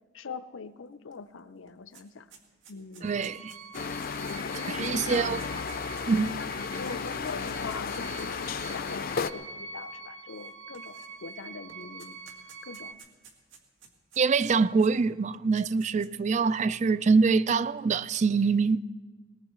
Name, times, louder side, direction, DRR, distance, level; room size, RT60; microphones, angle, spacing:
voice 1, 0.1-2.3 2.7-3.2 4.2-5.5 6.4-12.2 12.6-13.0, left 4 dB, 85° left, 0.7 m, -42 dB
sound 1, 1.1-1.2 1.5-8.4 9.2-9.3 10.3-11.4 11.7-14.9 15.3-16.3, right 6 dB, 90° right, 2.1 m, -54 dB
voice 2, 3.0-3.5 4.7-5.4 6.1-6.4 14.2-18.8, right 4 dB, 35° right, 0.4 m, -24 dB
sound 2, 3.0-12.9, right 4 dB, 65° right, 0.7 m, -45 dB
sound 3, 3.7-9.3, left 5 dB, 50° left, 0.5 m, -34 dB
20.5 x 19.5 x 3.1 m
head